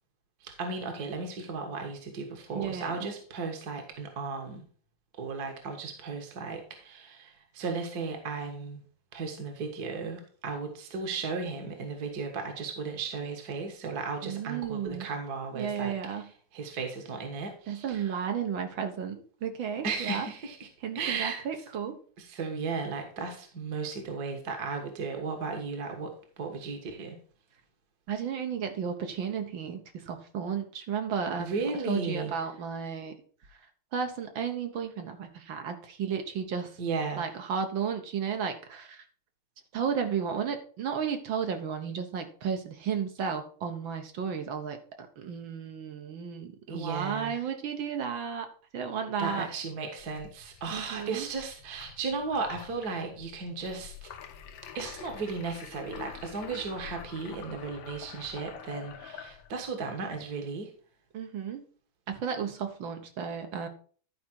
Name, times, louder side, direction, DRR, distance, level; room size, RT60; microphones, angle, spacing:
voice 1, 0.4-4.7 5.2-8.8 9.1-18.2 19.8-20.7 20.9-21.4 22.2-27.2 31.4-32.3 36.8-37.3 46.7-47.4 49.2-54.1 54.7-60.7, right 4 dB, 50° right, 4 dB, 1.8 m, -35 dB
voice 2, 2.5-3.0 14.2-15.1 15.6-16.3 17.7-20.3 20.8-22.0 28.1-33.1 33.9-36.8 37.2-39.0 39.7-48.5 48.7-49.4 50.7-51.3 61.1-61.6 62.1-63.7, right 7 dB, 70° right, 6 dB, 1.9 m, -33 dB
sound 1, 50.0-59.7, left 8 dB, 70° left, 1.5 m, -47 dB
11.5 x 5.1 x 4.5 m, 0.43 s
omnidirectional pair, 2.3 m